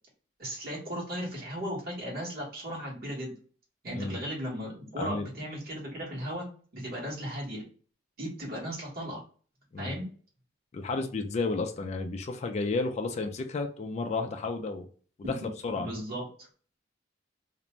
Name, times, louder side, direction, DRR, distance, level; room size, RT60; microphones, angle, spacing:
voice 1, 0.4-3.3 3.8-6.4 6.7-7.6 8.2-9.2 9.8-10.1 15.2-16.5, equal, 50° right, 1.2 m, -36 dB
voice 2, 5.0-5.3 9.7-10.0 10.7-14.9 15.2-15.9, left 3 dB, 35° left, 0.3 m, -32 dB
2.5 x 2.1 x 2.9 m
head